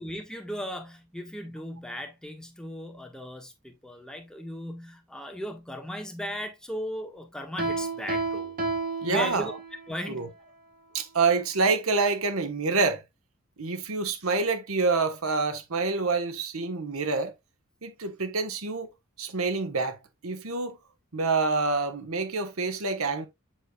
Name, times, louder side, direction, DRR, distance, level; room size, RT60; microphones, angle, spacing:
voice 1, 0.0-8.5 9.1-9.5 9.9-10.3, equal, 5° left, 1.4 m, -36 dB
Piano, 7.6-9.9, right 3 dB, 45° right, 1.9 m, -31 dB
voice 2, 9.0-9.5 10.1-10.3 10.9-13.0 13.6-17.3 17.8-18.9 19.2-20.0 20.2-20.8 21.1-23.3, right 4 dB, 75° right, 1.2 m, -27 dB
7.7 x 6.4 x 2.3 m
head